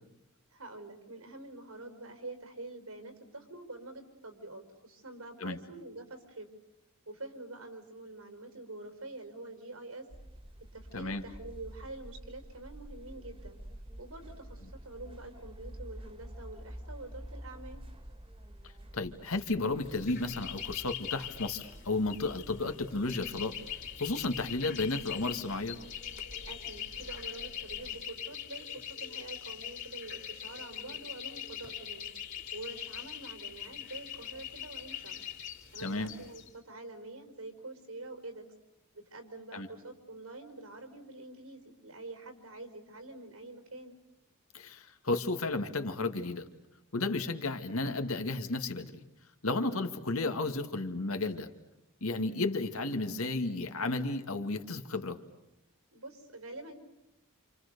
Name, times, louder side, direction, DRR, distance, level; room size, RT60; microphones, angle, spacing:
voice 1, 0.5-6.5 7.1-10.1 10.7-13.6 14.0-17.8 26.5-32.1 32.5-35.2 35.7-38.4 38.9-44.0 55.9-56.7, right 2 dB, 85° right, 7 dB, 4.7 m, -46 dB
sound 1, 10.1-28.0, equal, 25° right, 2.0 m, -49 dB
voice 2, 18.9-23.6 24.0-25.8 35.8-36.1 39.5-39.7 44.5-46.5 46.9-48.9 49.4-51.5 52.0-55.2, left 2 dB, 75° left, 7 dB, 2.1 m, -33 dB
sound 2, 19.8-36.5, left 10 dB, 55° left, 3.6 m, -42 dB
29.0 x 28.5 x 6.8 m, 0.89 s
head